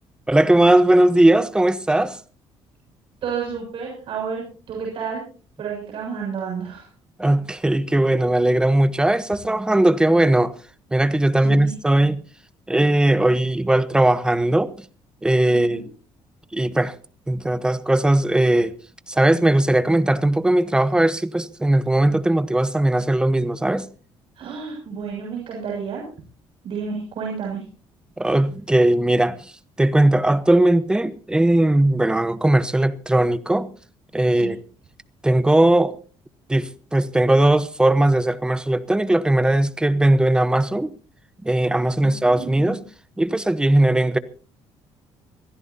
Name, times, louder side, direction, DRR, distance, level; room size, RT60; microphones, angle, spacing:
voice 1, 0.3-2.2 7.2-10.5 10.9-12.2 12.7-14.7 15.2-15.8 16.5-16.9 17.3-18.7 19.1-23.9 28.2-29.5 29.8-33.7 34.1-34.6 35.2-35.9 36.5-40.9 41.4-42.8 43.2-44.2, right 1 dB, 10° right, 1.0 m, -18 dB
voice 2, 3.2-5.2 5.6-6.9 11.4-11.7 15.5-15.9 24.4-26.0 26.6-27.6 34.3-34.5 42.0-42.8, right 6 dB, 60° right, 7.1 m, -31 dB
25.5 x 16.0 x 2.8 m
cardioid pair, 135°, 10 cm